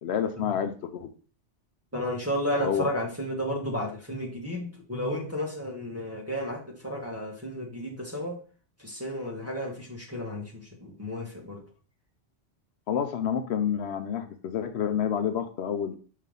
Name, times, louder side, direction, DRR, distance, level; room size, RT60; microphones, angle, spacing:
voice 1, 0.0-1.1 2.6-2.9 12.9-16.0, left 8 dB, 70° left, 8 dB, 0.8 m, -29 dB
voice 2, 1.9-8.4 8.8-11.6, equal, 15° right, -3 dB, 1.4 m, -32 dB
5.6 x 3.3 x 5.3 m, 0.40 s
omnidirectional pair, 1.2 m